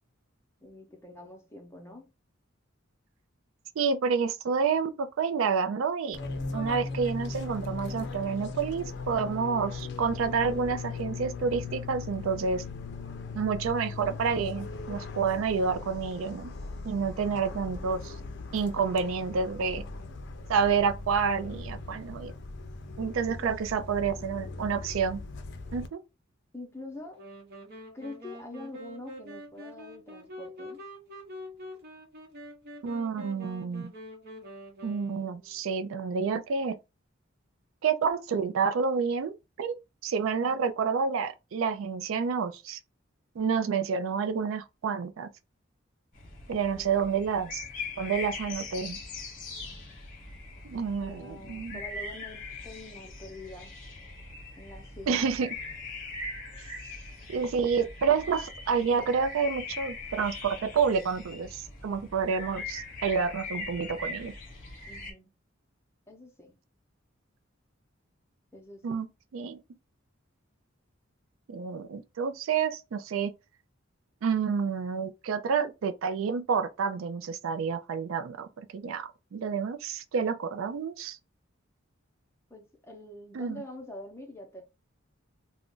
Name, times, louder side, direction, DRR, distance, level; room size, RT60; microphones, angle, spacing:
voice 1, 0.6-2.1 23.3-23.5 23.8-24.0 26.5-27.2 27.9-30.8 40.4-40.6 46.7-47.0 51.0-53.7 54.6-55.4 64.9-65.3 66.1-66.6 68.5-69.0 82.5-84.6, left 1 dB, 15° left, 0.6 m, -45 dB
voice 2, 3.8-6.2 6.5-12.6 13.3-16.5 16.8-18.1 18.5-19.8 20.5-22.3 23.0-25.2 25.7-26.0 32.8-33.9 34.8-36.8 37.8-39.8 40.0-42.8 43.4-45.3 46.5-47.6 48.0-49.0 50.6-51.8 55.1-55.5 56.6-56.7 57.3-64.3 68.8-69.1 69.3-69.6 71.5-73.3 74.2-81.2 83.3-83.6, right 6 dB, 75° right, 0.4 m, -29 dB
Fixed-wing aircraft airplane, 6.1-25.9, left 3 dB, 60° left, 0.5 m, -39 dB
sound 1, 27.1-35.6, equal, 50° right, 0.8 m, -45 dB
sound 2, 46.1-65.1, left 3 dB, 40° left, 0.9 m, -41 dB
2.4 x 2.1 x 3.7 m
head